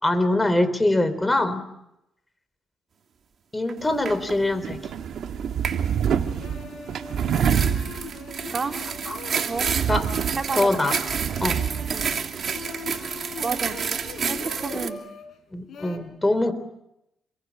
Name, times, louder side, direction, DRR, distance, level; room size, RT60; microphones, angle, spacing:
voice 1, 0.0-1.6 3.5-4.8 9.1-9.2 9.9-10.1 10.5-10.9 11.4-11.6 15.5-16.5, left 1 dB, 15° left, 11 dB, 3.8 m, -23 dB
sound 1, 3.7-3.8 4.1-4.4 5.6-5.8 7.2-14.9, right 6 dB, 50° right, 3.0 m, -30 dB
sound 2, 3.8-14.9, right 8 dB, 65° right, 1.7 m, -29 dB
sound 3, 5.5-5.6 6.0-15.2 15.7-16.0, left 5 dB, 60° left, 4.6 m, -41 dB
voice 2, 10.4-10.7 11.9-12.1 13.4-13.8 14.3-15.0, right 4 dB, 35° right, 4 dB, 2.7 m, -30 dB
28.0 x 22.5 x 7.3 m, 0.84 s
cardioid pair, 90°, 0 cm